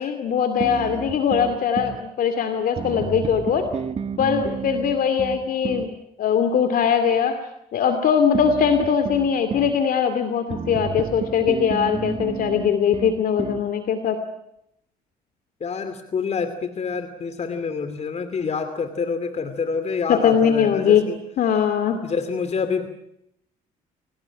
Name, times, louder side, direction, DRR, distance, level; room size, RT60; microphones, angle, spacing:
voice 1, 0.0-3.7 4.2-5.9 6.2-7.4 7.7-14.2 20.1-21.0 21.4-22.0, left 7 dB, 65° left, 9 dB, 2.5 m, -21 dB
sound 1, 0.6-2.0 2.8-5.9 8.3-9.8 10.5-13.7, right 6 dB, 40° right, 1.6 m, -31 dB
voice 2, 15.6-21.2 22.0-22.9, left 5 dB, 45° left, 10 dB, 2.7 m, -27 dB
27.5 x 18.5 x 10.0 m, 0.78 s
cardioid pair, 80°, 16 cm